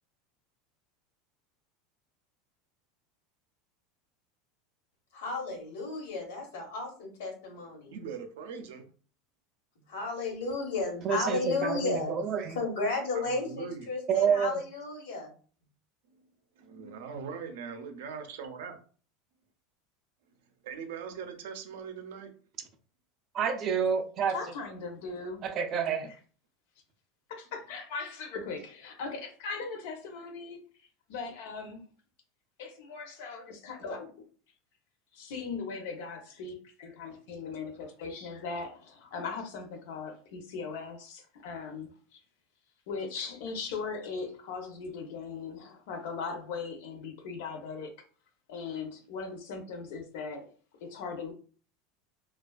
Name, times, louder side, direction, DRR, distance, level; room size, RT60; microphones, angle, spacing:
voice 1, 5.1-7.9 9.9-12.1 12.5-15.3, left 3 dB, 90° left, 1.0 m, -33 dB
voice 2, 7.9-8.9 13.1-13.9 16.1-16.2 16.7-18.8 20.6-22.3, right 6 dB, 90° right, 0.5 m, -41 dB
voice 3, 11.0-12.6 14.1-14.6 23.3-24.4 25.4-26.1, right 7 dB, 35° right, 0.3 m, -28 dB
voice 4, 24.3-25.4 27.3-30.6 31.1-31.8 32.6-34.1 35.1-42.2 42.9-47.9 48.5-50.4 50.8-51.3, left 4 dB, 70° left, 0.6 m, -39 dB
2.4 x 2.3 x 2.3 m
supercardioid pair, 165°, 0 cm